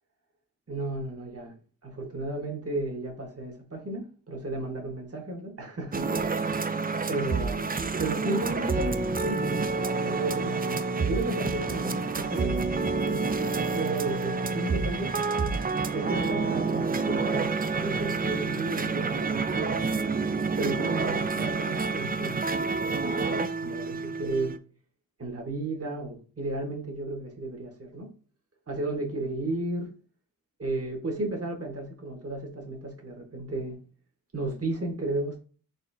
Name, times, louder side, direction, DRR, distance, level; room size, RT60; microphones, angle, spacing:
voice 1, 0.7-1.5 1.8-6.7 7.1-7.6 8.0-12.7 13.0-15.2 15.9-19.9 20.6-24.5 25.2-28.1 28.7-29.9 30.6-33.8 34.3-35.4, right 2 dB, 45° right, 1.5 m, -34 dB
sound 1, 5.9-24.6, right 4 dB, 30° right, 0.4 m, -28 dB
4.1 x 3.7 x 2.6 m
wide cardioid pair, 80°, 33 cm